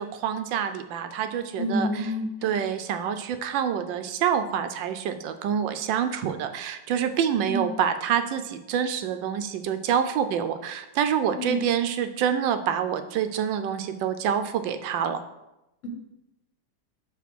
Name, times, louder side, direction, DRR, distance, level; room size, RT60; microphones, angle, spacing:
voice 1, 0.0-1.9 2.4-15.2, right 8 dB, 85° right, 9 dB, 1.3 m, -27 dB
voice 2, 1.6-2.6 7.5-7.7 11.4-11.6, equal, 45° left, 0 dB, 1.4 m, -28 dB
5.8 x 4.1 x 6.1 m, 0.92 s
omnidirectional pair, 2.0 m